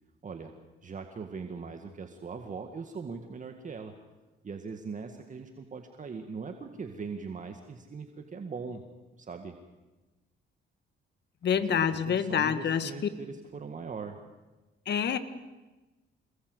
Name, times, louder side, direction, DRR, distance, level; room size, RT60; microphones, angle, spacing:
voice 1, 0.8-3.9 4.4-8.8 9.2-9.6 11.5-14.2, right 5 dB, 40° right, 5 dB, 2.0 m, -40 dB
voice 2, 11.4-12.9 14.9-15.2, left 8 dB, 60° left, 11 dB, 1.8 m, -27 dB
27.0 x 20.0 x 8.1 m, 1.2 s
cardioid pair, 90°, 20 cm